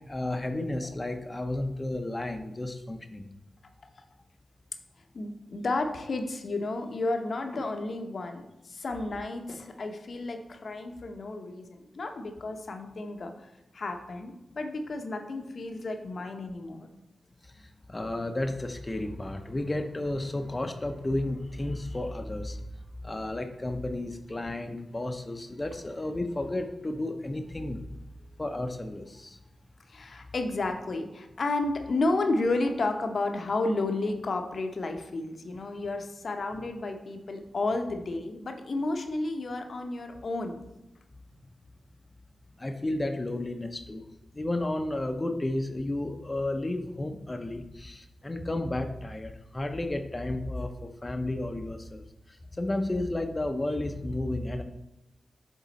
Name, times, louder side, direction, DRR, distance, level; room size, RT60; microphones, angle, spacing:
voice 1, 0.1-3.3 17.4-22.6 23.0-27.9 28.4-29.4 42.6-44.0 44.3-52.0 52.6-54.6, left 1 dB, 30° left, 6 dB, 0.7 m, -32 dB
voice 2, 5.1-16.9 29.9-40.6, left 2 dB, 60° left, 5 dB, 0.8 m, -32 dB
7.3 x 3.7 x 4.1 m, 0.92 s
supercardioid pair, 40°, 0 cm